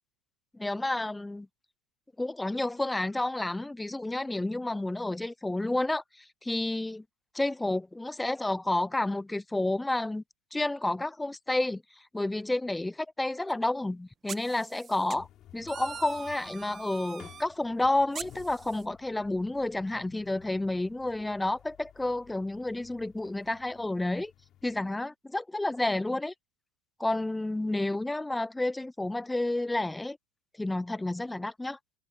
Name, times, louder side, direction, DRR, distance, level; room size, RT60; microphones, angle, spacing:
voice 1, 0.5-1.5 2.2-7.0 7.3-10.2 10.5-11.8 12.1-15.3 15.5-24.3 24.6-26.3 27.0-30.2 30.6-31.8, left 2 dB, 5° left, 0.4 m, -30 dB
sound 1, 13.5-13.6 14.3-15.2 15.7-17.4 18.1-18.8, right 7 dB, 25° right, 1.0 m, -43 dB
sound 2, 15.1-24.9, left 12 dB, 35° left, 3.9 m, -56 dB
supercardioid pair, 140°, 0 cm